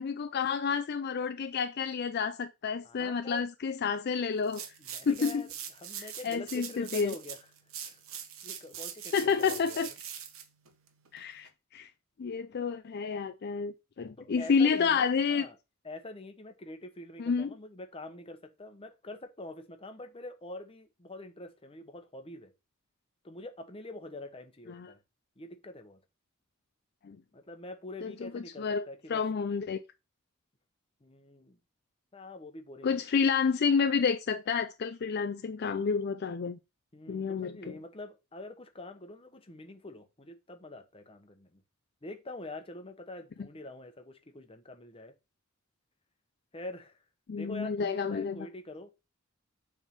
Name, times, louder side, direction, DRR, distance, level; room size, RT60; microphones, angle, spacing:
voice 1, 0.0-4.6 5.1-5.4 6.0-7.2 9.1-9.9 11.1-11.9 12.2-15.5 17.2-17.5 24.7-24.9 27.0-27.2 28.0-28.8 29.1-29.8 32.8-36.6 37.1-37.7 47.3-48.4, left 5 dB, 50° left, 0.4 m, -30 dB
voice 2, 2.8-3.4 4.8-7.4 7.8-8.0 8.4-9.9 14.2-15.6 15.8-22.5 23.2-25.0 25.4-26.0 27.3-29.2 31.0-31.6 32.1-33.0 36.9-41.6 42.0-45.1 46.5-47.0 47.4-48.9, left 2 dB, 25° left, 1.0 m, -45 dB
sound 1, 4.4-11.5, right 8 dB, 75° right, 1.1 m, -43 dB
7.1 x 3.5 x 5.8 m
head